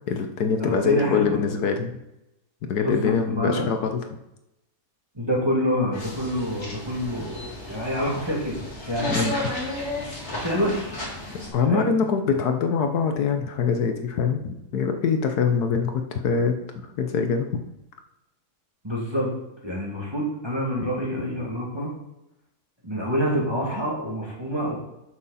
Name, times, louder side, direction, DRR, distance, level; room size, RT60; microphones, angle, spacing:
voice 1, 0.1-1.9 2.6-4.0 9.1-9.3 11.5-17.6, left 6 dB, 75° left, 6 dB, 1.4 m, -24 dB
voice 2, 0.6-1.4 2.8-3.8 5.1-9.3 10.3-10.9 11.7-11.9 18.8-19.3 19.6-21.9 22.8-24.7, equal, 15° right, -3 dB, 2.4 m, -27 dB
sound 1, 5.9-11.5, left 2 dB, 45° left, 2.6 m, -33 dB
11.0 x 6.6 x 4.2 m, 0.90 s
omnidirectional pair, 1.7 m